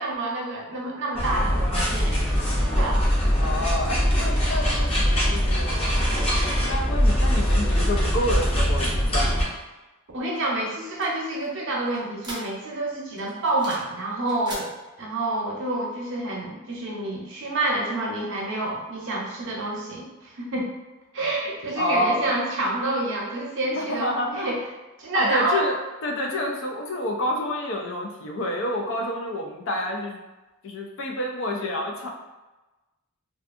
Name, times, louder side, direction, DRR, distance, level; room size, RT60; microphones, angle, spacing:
voice 1, 0.0-2.2 2.6-3.1 10.1-14.7 15.0-20.7 21.1-24.6 25.0-25.7, right 2 dB, 60° right, -2 dB, 0.6 m, -28 dB
sound 1, 1.1-9.4, equal, 25° left, 0.7 m, -22 dB
voice 2, 3.3-6.0 6.7-9.5 21.8-22.3 23.8-24.5 25.1-30.2 30.6-32.1, left 1 dB, 65° left, 1 dB, 0.4 m, -28 dB
sound 2, 10.3-12.8 13.2-14.0 14.2-14.7, right 1 dB, 20° right, 0.6 m, -40 dB
2.6 x 2.3 x 2.4 m, 1.1 s
head